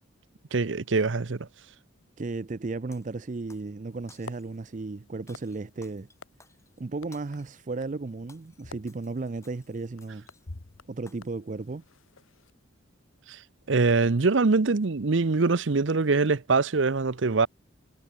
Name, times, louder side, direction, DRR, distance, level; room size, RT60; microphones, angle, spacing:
voice 1, 0.5-1.5 13.3-13.4 13.7-17.5, right 3 dB, 70° right, 0.8 m, -23 dB
voice 2, 2.2-6.1 6.8-10.3 10.9-11.8, right 3 dB, 40° right, 0.5 m, -34 dB
Shatter, 2.9-3.7 4.1-4.7 5.3-7.7 8.1-10.6 11.1-11.5, left 4 dB, 15° left, 7.8 m, -59 dB
sound 1, 3.9-12.5, left 3 dB, 85° left, 1.4 m, -51 dB
head